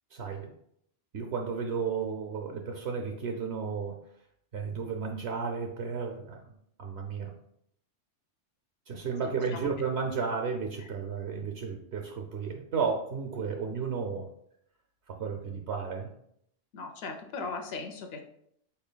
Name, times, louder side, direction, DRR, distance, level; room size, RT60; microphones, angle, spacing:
voice 1, 0.1-0.5 1.1-4.0 4.5-6.4 6.8-7.3 8.9-14.3 15.1-16.1, right 5 dB, 70° right, 3 dB, 0.8 m, -33 dB
voice 2, 9.2-9.7 10.8-10.9 16.7-18.2, left 4 dB, 60° left, 5 dB, 0.9 m, -39 dB
5.5 x 4.3 x 2.2 m, 0.71 s
omnidirectional pair, 1.2 m